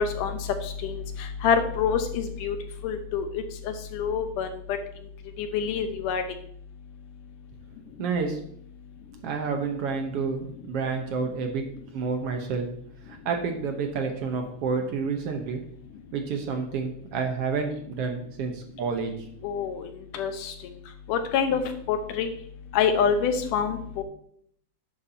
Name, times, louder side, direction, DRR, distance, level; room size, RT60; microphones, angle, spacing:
voice 1, 0.0-2.6 2.8-4.5 5.4-6.2 19.4-19.9 20.1-20.5 21.1-21.6 21.9-22.3 22.7-24.0, left 7 dB, 80° left, 7 dB, 2.5 m, -26 dB
voice 2, 8.0-8.4 9.2-11.6 11.9-12.7 13.1-15.6 16.1-19.1, right 5 dB, 65° right, 4 dB, 1.6 m, -29 dB
11.0 x 8.7 x 2.8 m, 0.65 s
omnidirectional pair, 3.6 m